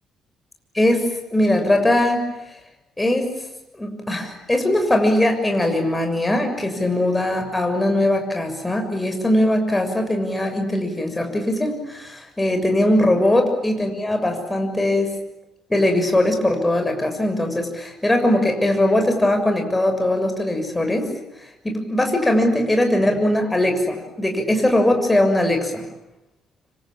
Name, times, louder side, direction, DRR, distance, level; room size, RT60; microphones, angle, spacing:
voice 1, 0.7-2.3 3.0-3.3 3.8-15.1 15.7-21.1 21.6-25.8, left 1 dB, 15° left, 4 dB, 6.8 m, -20 dB
26.5 x 25.5 x 8.8 m, 0.93 s
figure-of-eight pair, 45°, 0 cm